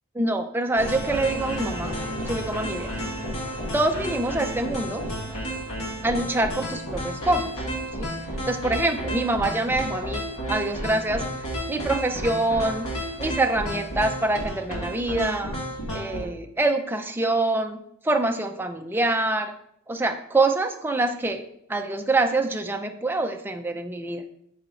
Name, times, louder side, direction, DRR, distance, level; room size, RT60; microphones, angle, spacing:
voice 1, 0.2-1.9 2.3-2.9 3.7-5.0 6.0-7.5 7.9-8.1 8.5-11.2 11.7-12.9 13.2-15.6 15.9-19.5 19.9-21.4 21.7-24.2, right 2 dB, 10° right, 5 dB, 0.4 m, -25 dB
sound 1, 0.7-16.2, equal, 75° left, 1.9 m, -31 dB
5.7 x 4.4 x 3.8 m, 0.72 s
head